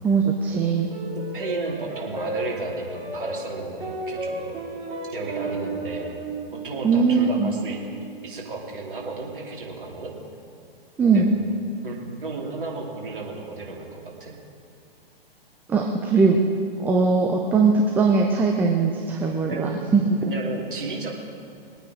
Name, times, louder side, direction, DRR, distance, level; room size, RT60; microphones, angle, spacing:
voice 1, 0.0-0.9 6.8-7.5 11.0-11.3 15.7-16.4 16.8-20.3, right 4 dB, 5° right, 1 dB, 0.4 m, -20 dB
sound 1, 0.9-9.5, right 2 dB, 25° right, 3.5 m, -34 dB
voice 2, 1.3-4.5 5.1-6.2 6.6-7.8 8.2-10.1 11.0-11.2 11.8-14.3 19.5-19.7 20.2-21.2, right 3 dB, 60° right, -2 dB, 3.1 m, -33 dB
22.0 x 9.0 x 5.0 m, 2.2 s
figure-of-eight pair, 115°, 30 cm